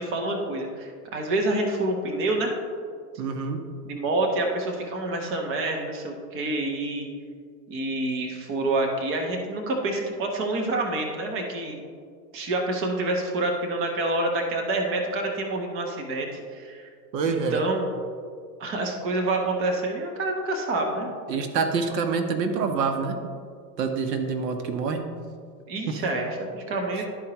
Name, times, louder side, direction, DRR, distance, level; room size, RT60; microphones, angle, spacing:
voice 1, 0.0-2.5 3.8-7.1 7.7-11.8 12.3-16.9 17.5-17.9 18.6-21.1 25.7-27.1, right 2 dB, 25° right, 2 dB, 1.0 m, -27 dB
voice 2, 3.2-3.6 17.1-17.6 21.3-23.2 23.8-25.0 25.9-26.0 27.0-27.1, right 5 dB, 75° right, 6 dB, 1.0 m, -26 dB
12.0 x 4.5 x 2.9 m, 2.1 s
supercardioid pair, 145°, 50 cm